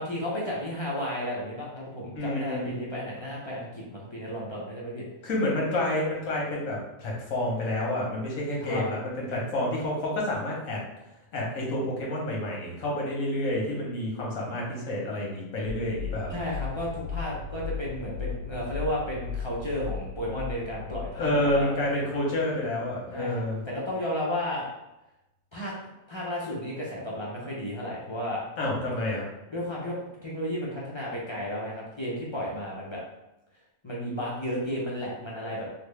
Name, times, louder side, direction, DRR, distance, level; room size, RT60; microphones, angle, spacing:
voice 1, 0.0-5.0 8.6-8.9 16.3-21.7 23.1-24.7 25.5-25.7 26.1-28.4 29.5-30.0 30.2-33.0 33.8-35.7, left 1 dB, 40° left, -6 dB, 0.4 m, -33 dB
voice 2, 2.1-2.7 5.2-10.8 11.3-16.3 21.2-23.6 28.6-29.3, left 1 dB, 80° left, -3 dB, 1.4 m, -29 dB
sound 1, 15.7-22.9, left 5 dB, 55° right, 0.7 m, -37 dB
3.9 x 2.0 x 3.2 m, 0.94 s
omnidirectional pair, 1.4 m